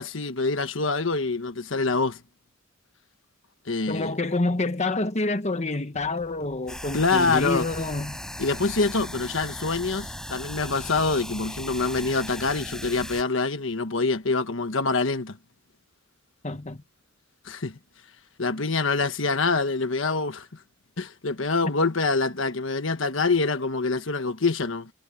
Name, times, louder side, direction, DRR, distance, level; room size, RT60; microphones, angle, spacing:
voice 1, 0.0-2.2 3.7-4.2 6.9-7.7 8.4-15.4 17.4-17.8 18.4-20.5 21.0-24.9, left 3 dB, 70° left, 1.4 m, -25 dB
voice 2, 3.9-8.2 16.4-16.8, left 2 dB, 35° left, 1.3 m, -27 dB
sound 1, 5.9-11.5, equal, 55° right, 7.2 m, -52 dB
sound 2, 6.7-13.2, equal, 5° left, 7.9 m, -38 dB
head